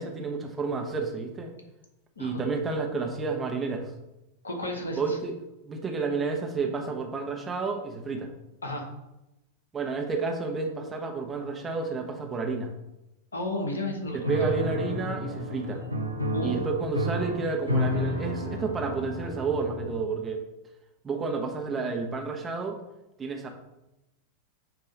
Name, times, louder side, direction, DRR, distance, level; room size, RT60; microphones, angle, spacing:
voice 1, 0.0-1.5 2.2-3.9 5.0-5.3 5.6-8.3 9.7-12.7 14.1-15.8 16.4-20.4 21.0-22.8 23.2-23.5, right 4 dB, 20° right, 2 dB, 1.1 m, -30 dB
voice 2, 4.4-5.2 8.6-8.9 13.3-14.5 16.3-16.6, left 1 dB, 75° left, 2 dB, 1.4 m, -32 dB
Piano, 14.2-20.2, equal, 90° right, 0.8 m, -31 dB
8.7 x 3.0 x 5.3 m, 0.94 s
figure-of-eight pair, 90°, 0 cm